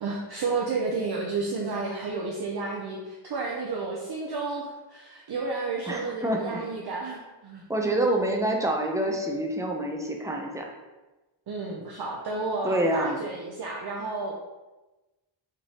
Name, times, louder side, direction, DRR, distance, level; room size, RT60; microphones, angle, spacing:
voice 1, 0.0-7.6 11.5-14.3, right 3 dB, 50° right, -3 dB, 0.6 m, -31 dB
voice 2, 5.9-6.6 7.7-10.7 12.6-13.2, right 1 dB, 5° right, 1 dB, 0.4 m, -27 dB
4.9 x 3.4 x 2.8 m, 1.1 s
wide cardioid pair, 160°, 49 cm